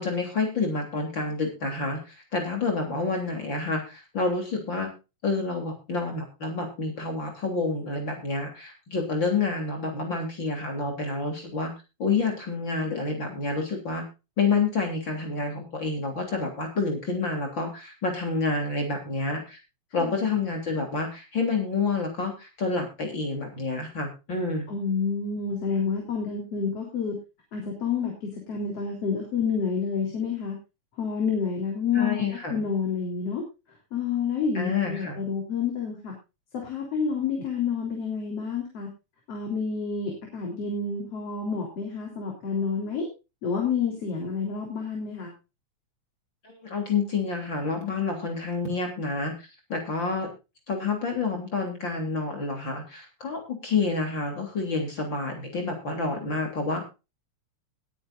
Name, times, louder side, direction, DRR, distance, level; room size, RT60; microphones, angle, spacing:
voice 1, 0.0-4.9 5.2-11.7 12.0-14.1 14.4-19.6 19.9-24.7 31.9-32.6 34.5-35.2 46.4-49.3 49.7-50.3 50.7-56.8, left 4 dB, 40° left, 3 dB, 3.8 m, -28 dB
voice 2, 20.0-20.4 24.7-27.2 27.5-30.6 31.0-33.4 33.9-36.1 36.6-38.9 39.3-43.1 43.4-45.3, left 5 dB, 55° left, 1 dB, 4.6 m, -29 dB
20.5 x 9.9 x 2.6 m, 0.28 s
omnidirectional pair, 3.3 m